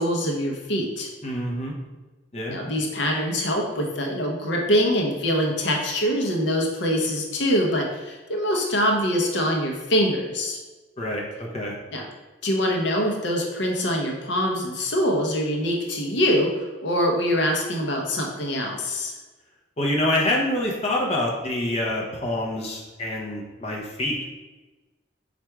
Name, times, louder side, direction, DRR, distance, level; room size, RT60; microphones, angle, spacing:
voice 1, 0.0-1.1 2.5-10.6 11.9-12.1 12.4-19.1, equal, 70° left, 1 dB, 0.7 m, -24 dB
voice 2, 1.2-1.7 2.3-2.6 11.0-11.7 19.8-24.2, left 1 dB, 35° left, -2 dB, 0.7 m, -26 dB
4.4 x 2.5 x 4.6 m, 1.2 s
head